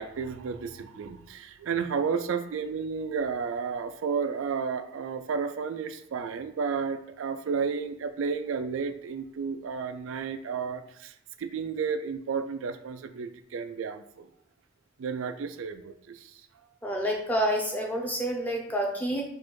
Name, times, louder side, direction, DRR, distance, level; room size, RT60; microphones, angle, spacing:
voice 1, 0.0-14.3 15.0-16.4, right 5 dB, 80° right, 9 dB, 0.4 m, -32 dB
voice 2, 16.8-19.2, equal, 10° left, -1 dB, 0.7 m, -28 dB
4.1 x 2.5 x 4.7 m, 0.71 s
head